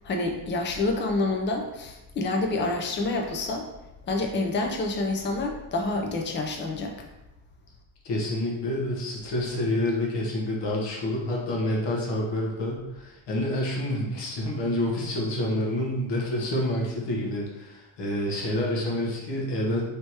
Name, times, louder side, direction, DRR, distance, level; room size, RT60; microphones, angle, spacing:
voice 1, 0.0-3.7 4.1-7.0, left 2 dB, 25° left, 2 dB, 0.4 m, -28 dB
voice 2, 8.0-19.8, left 1 dB, 60° left, -3 dB, 1.2 m, -28 dB
3.4 x 2.8 x 4.5 m, 0.97 s
cardioid pair, 160°, 48 cm